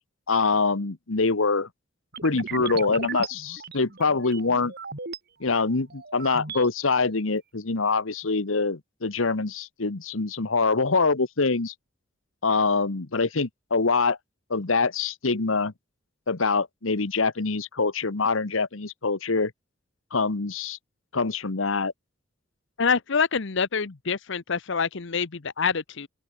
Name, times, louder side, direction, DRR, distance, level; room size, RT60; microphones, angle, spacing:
voice 1, 0.3-1.7 2.2-4.7 5.4-11.7 12.4-14.2 14.5-15.7 16.3-19.5 20.1-20.8 21.1-21.9, left 4 dB, 90° left, 1.3 m, -24 dB
sound 1, 2.1-5.2 5.7-6.7, right 5 dB, 55° right, 4.2 m, -37 dB
voice 2, 22.8-26.1, left 5 dB, 65° left, 0.9 m, -26 dB
open air
head